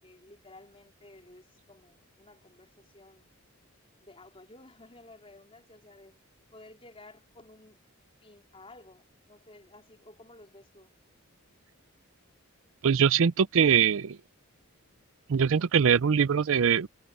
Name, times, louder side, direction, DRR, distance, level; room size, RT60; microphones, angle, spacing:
voice 1, 0.0-3.3 4.0-6.2 6.5-7.8 8.2-10.9, left 2 dB, 25° left, 4.1 m, -54 dB
voice 2, 12.8-14.2 15.3-16.9, right 7 dB, 65° right, 0.5 m, -22 dB
head